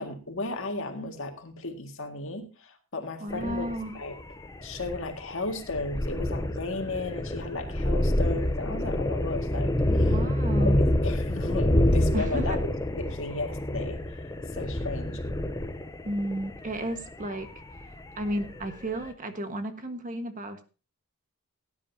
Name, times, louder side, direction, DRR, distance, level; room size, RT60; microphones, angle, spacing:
voice 1, 0.0-4.2 4.6-10.2 10.6-12.6 13.0-14.0 14.5-15.2, left 2 dB, 60° left, 4 dB, 2.0 m, -35 dB
voice 2, 3.2-3.9 10.1-10.8 12.1-12.6 16.0-17.5 18.2-20.6, right 1 dB, 35° right, 7 dB, 1.4 m, -33 dB
sound 1, 3.3-18.8, left 1 dB, 15° left, 0.7 m, -27 dB
17.5 x 10.5 x 2.7 m, 0.33 s
head